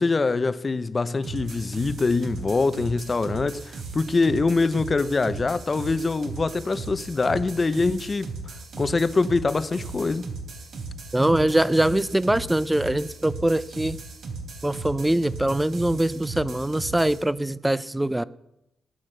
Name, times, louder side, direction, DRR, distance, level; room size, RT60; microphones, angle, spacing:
voice 1, 0.0-8.3 8.8-10.2, left 3 dB, 30° left, 0.8 m, -24 dB
sound 1, 1.2-17.2, right 3 dB, 65° right, 3.3 m, -37 dB
voice 2, 11.1-14.0 14.6-18.2, right 1 dB, 10° right, 0.6 m, -23 dB
19.0 x 9.6 x 6.7 m
cardioid pair, 95°, 0 cm